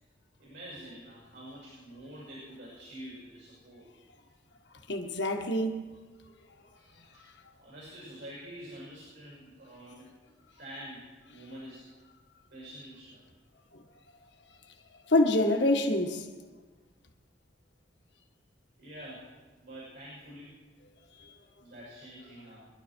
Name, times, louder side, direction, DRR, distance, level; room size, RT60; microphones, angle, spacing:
voice 1, 0.4-3.9 6.7-7.3 7.6-10.1 10.5-11.9 12.5-13.2 18.8-20.6 21.6-22.7, equal, 70° right, 6.4 m, -47 dB
voice 2, 4.9-5.8 15.1-16.3, left 1 dB, 70° left, 1.7 m, -26 dB
24.5 x 11.5 x 4.6 m
head